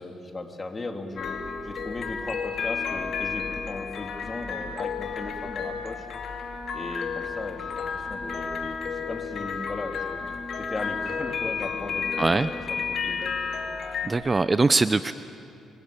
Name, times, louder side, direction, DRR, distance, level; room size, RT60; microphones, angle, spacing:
voice 1, 0.0-1.4 1.6-6.1 6.7-10.2 10.5-13.3, left 2 dB, 25° left, 3 dB, 3.2 m, -37 dB
sound 1, 1.2-14.1, left 5 dB, 60° left, 2.6 m, -32 dB
voice 2, 12.2-12.5 14.0-15.1, right 3 dB, 25° right, 13 dB, 0.6 m, -22 dB
25.5 x 23.0 x 8.6 m, 2.5 s
cardioid pair, 90°, 0 cm